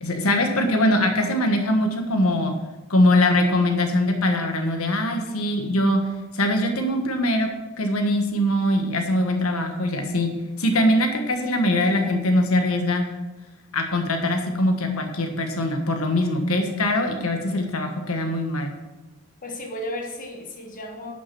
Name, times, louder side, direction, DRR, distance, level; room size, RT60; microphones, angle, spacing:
voice 1, 0.0-2.5 2.9-6.0 6.3-7.5 7.8-10.3 10.6-13.0 13.7-18.7, left 1 dB, 75° left, 4 dB, 1.5 m, -22 dB
voice 2, 19.4-21.1, left 1 dB, 40° left, 3 dB, 1.6 m, -34 dB
11.5 x 6.1 x 6.0 m, 1.1 s
head